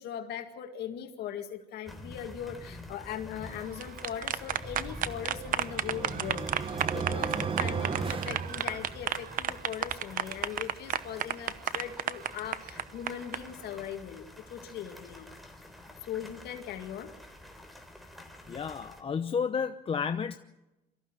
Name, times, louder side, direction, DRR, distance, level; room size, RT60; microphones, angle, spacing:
voice 1, 0.0-15.3 16.0-17.1, left 9 dB, 75° left, 5 dB, 2.1 m, -40 dB
sound 1, 1.9-19.0, left 1 dB, ahead, 3.6 m, -48 dB
sound 2, 3.6-13.4, right 10 dB, 55° right, 0.9 m, -32 dB
sound 3, 4.9-9.2, right 5 dB, 30° right, 1.3 m, -35 dB
voice 2, 18.5-20.4, left 6 dB, 35° left, 8 dB, 0.9 m, -31 dB
24.0 x 14.5 x 9.1 m, 0.99 s
cardioid pair, 110°, 17 cm